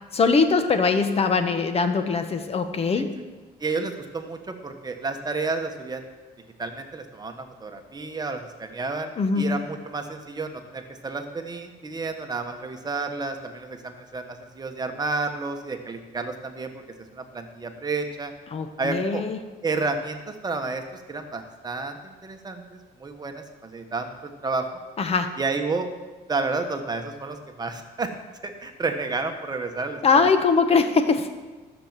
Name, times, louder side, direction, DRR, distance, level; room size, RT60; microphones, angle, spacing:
voice 1, 0.1-3.2 9.2-9.6 18.5-19.4 25.0-25.3 30.0-31.3, left 4 dB, 35° left, 8 dB, 1.2 m, -21 dB
voice 2, 3.6-6.0 6.6-16.7 17.1-18.3 18.8-19.2 19.6-24.7 25.4-25.9 26.3-28.1 28.4-30.3, right 3 dB, 25° right, 5 dB, 1.4 m, -31 dB
12.5 x 7.4 x 7.5 m, 1.2 s
cardioid pair, 110°, 17 cm